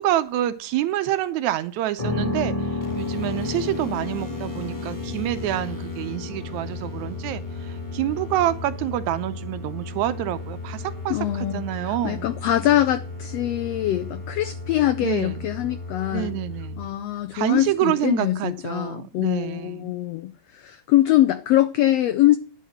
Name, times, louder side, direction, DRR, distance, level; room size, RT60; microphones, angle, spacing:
voice 1, 0.0-12.3 15.0-15.5 16.1-16.8 17.3-19.9, right 13 dB, 80° right, 1.9 m, -27 dB
sound 1, 2.0-17.8, left 4 dB, 30° left, 0.7 m, -35 dB
sound 2, 2.8-16.9, left 2 dB, 10° left, 1.4 m, -36 dB
voice 2, 11.1-16.3 16.8-22.4, left 13 dB, 85° left, 1.4 m, -23 dB
10.5 x 5.2 x 7.7 m
omnidirectional pair, 3.6 m